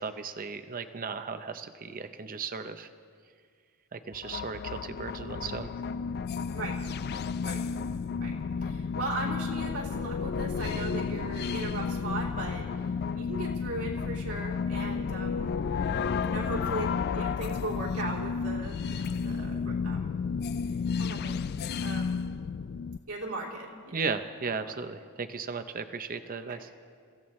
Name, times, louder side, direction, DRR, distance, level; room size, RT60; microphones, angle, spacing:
voice 1, 0.0-2.9 3.9-5.7 23.9-26.7, right 5 dB, 40° right, 9 dB, 0.6 m, -36 dB
sound 1, 4.1-23.0, left 5 dB, 45° left, 0.3 m, -32 dB
voice 2, 8.6-12.7 13.1-15.6 16.2-20.1 21.0-22.2 23.1-24.0 24.6-24.7 26.4-26.6, right 2 dB, 75° right, -4 dB, 3.3 m, -38 dB
29.0 x 15.5 x 3.2 m, 2.1 s
head